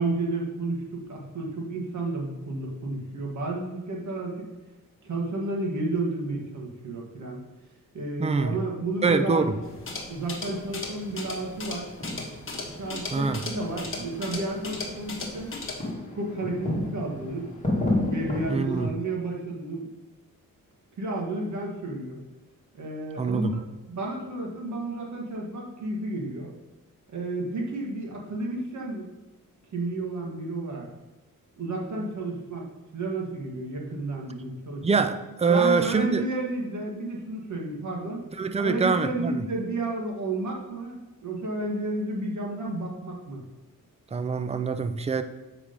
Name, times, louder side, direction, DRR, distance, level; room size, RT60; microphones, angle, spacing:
voice 1, 0.0-4.5 5.0-7.4 7.9-9.5 10.1-11.9 12.8-15.6 16.1-17.5 18.1-19.9 21.0-22.2 22.7-23.6 23.9-26.5 27.1-29.1 29.7-30.9 31.6-32.6 32.9-35.1 35.5-38.2 38.6-43.4, right 2 dB, 55° right, -1 dB, 1.7 m, -31 dB
voice 2, 8.2-8.6 9.0-9.6 13.1-13.4 18.5-18.9 23.2-23.6 34.8-36.2 38.4-39.5 44.1-45.2, right 4 dB, 20° right, 9 dB, 0.4 m, -24 dB
sound 1, 9.1-18.8, left 1 dB, 20° left, 1.8 m, -34 dB
sound 2, 9.6-15.9, left 3 dB, 35° left, 1.3 m, -38 dB
7.2 x 4.9 x 5.1 m, 1.1 s
wide cardioid pair, 150°, 35 cm